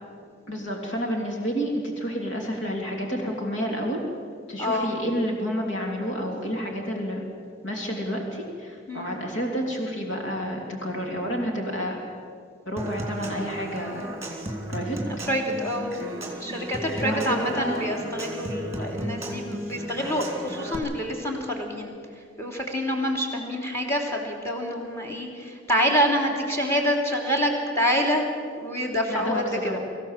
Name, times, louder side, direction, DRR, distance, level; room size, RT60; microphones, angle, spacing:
voice 1, 0.5-4.0 4.5-7.2 7.6-12.0 12.7-14.2 14.7-15.0 17.0-17.8 29.1-29.8, equal, 70° left, 1 dB, 3.0 m, -29 dB
voice 2, 4.6-4.9 8.9-9.1 15.3-15.9 16.4-21.9 22.4-28.2 28.6-29.8, equal, 15° left, 1 dB, 3.2 m, -26 dB
Human voice / Acoustic guitar / Percussion, 12.8-20.8, equal, 15° right, 3.1 m, -34 dB
24.0 x 15.5 x 7.4 m, 2.3 s
head